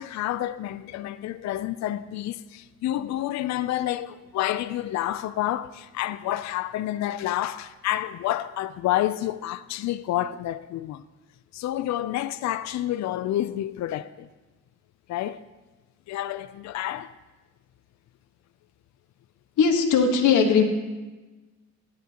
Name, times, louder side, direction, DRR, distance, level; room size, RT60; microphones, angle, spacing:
voice 1, 0.0-11.0 11.5-14.3 15.1-15.4 16.1-17.1, left 13 dB, 65° left, 0.5 m, -29 dB
voice 2, 19.6-20.6, left 6 dB, 80° left, 1.4 m, -19 dB
17.0 x 10.5 x 2.9 m
cardioid pair, 90°, 30 cm